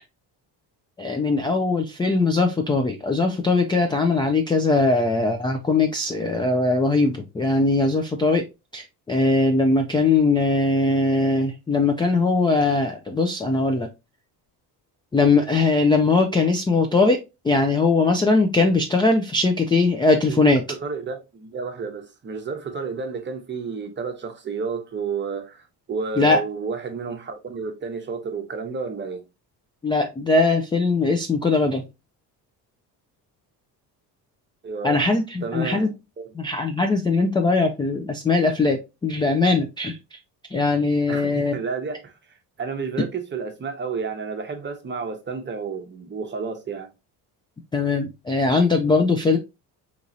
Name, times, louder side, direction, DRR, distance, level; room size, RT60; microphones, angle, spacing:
voice 1, 1.0-8.4 8.7-13.9 15.1-20.6 26.2-26.4 29.8-31.8 34.8-35.9 36.4-40.0 40.5-41.5 47.7-49.4, left 3 dB, 15° left, 0.3 m, -20 dB
voice 2, 20.8-29.2 34.6-35.1 35.4-36.2 41.1-42.1 42.6-46.9, right 5 dB, 30° right, 0.8 m, -31 dB
3.8 x 3.0 x 2.6 m
cardioid pair, 120°, 40 cm